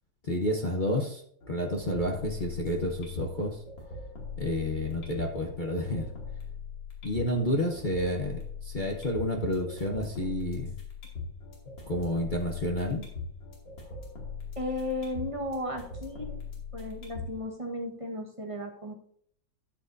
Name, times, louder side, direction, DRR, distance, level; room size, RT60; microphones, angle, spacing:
voice 1, 0.2-1.2 1.5-3.6 4.4-6.1 7.0-10.8 11.9-13.1, left 1 dB, 40° left, 2 dB, 0.7 m, -30 dB
sound 1, 1.4-17.4, left 4 dB, 75° left, 3.3 m, -41 dB
voice 2, 14.5-16.4 16.7-18.9, left 1 dB, 20° right, 1 dB, 1.0 m, -35 dB
13.0 x 8.0 x 2.7 m, 0.63 s
omnidirectional pair, 2.1 m